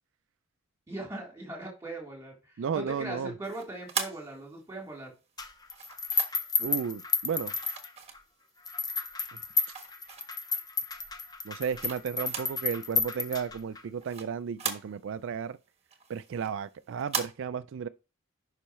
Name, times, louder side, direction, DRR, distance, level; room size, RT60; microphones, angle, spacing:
voice 1, 0.9-5.1, right 2 dB, 15° right, 3.4 m, -40 dB
voice 2, 2.6-3.3 6.6-7.5 11.4-15.6 16.1-17.9, right 7 dB, 65° right, 0.3 m, -33 dB
sound 1, 3.4-4.9 5.7-6.6 7.6-8.7 9.1-10.5 11.0-12.7 12.9-13.0 13.4-15.3 15.7-17.3, right 6 dB, 30° right, 1.3 m, -38 dB
sound 2, 5.4-8.2 8.7-13.8, left 4 dB, 20° left, 0.7 m, -32 dB
9.9 x 5.6 x 3.1 m
head